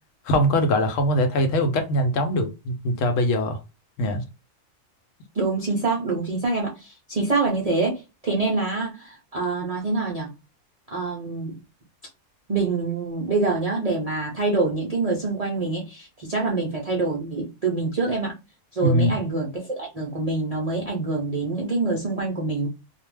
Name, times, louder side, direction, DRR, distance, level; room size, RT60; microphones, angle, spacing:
voice 1, 0.3-3.6 4.0-4.2 18.8-19.2, equal, 80° left, 1.0 m, -22 dB
voice 2, 5.4-10.3 10.9-11.6 12.5-18.3 18.7-22.7, right 3 dB, 50° right, 0.4 m, -26 dB
2.3 x 2.1 x 3.2 m
omnidirectional pair, 1.3 m